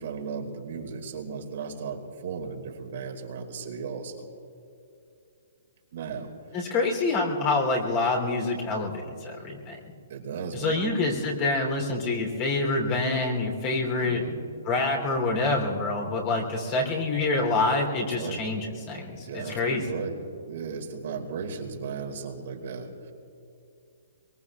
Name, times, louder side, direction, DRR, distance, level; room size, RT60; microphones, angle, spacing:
voice 1, 0.0-4.3 5.9-6.3 10.1-10.8 14.0-14.4 18.0-18.5 19.2-20.2 20.4-23.1, right 5 dB, 60° right, 2 dB, 2.2 m, -36 dB
voice 2, 6.5-8.9 9.2-9.8 10.5-14.2 14.6-19.8, left 3 dB, 35° left, 1 dB, 3.4 m, -26 dB
23.5 x 23.0 x 2.4 m, 2.6 s
hypercardioid pair, 150°, 0 cm